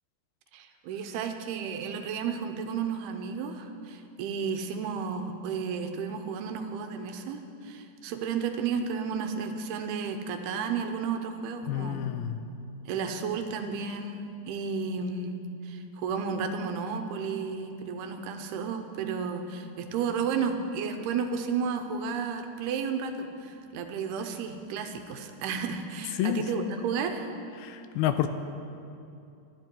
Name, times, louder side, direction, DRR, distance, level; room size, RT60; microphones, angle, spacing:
voice 1, 0.5-12.1 12.9-15.4 15.6-27.3, right 6 dB, 85° right, 6 dB, 2.9 m, -32 dB
voice 2, 11.7-12.4 26.2-26.8 27.6-28.3, left 11 dB, 80° left, 9 dB, 2.4 m, -29 dB
24.5 x 10.5 x 4.6 m, 2.7 s
omnidirectional pair, 4.6 m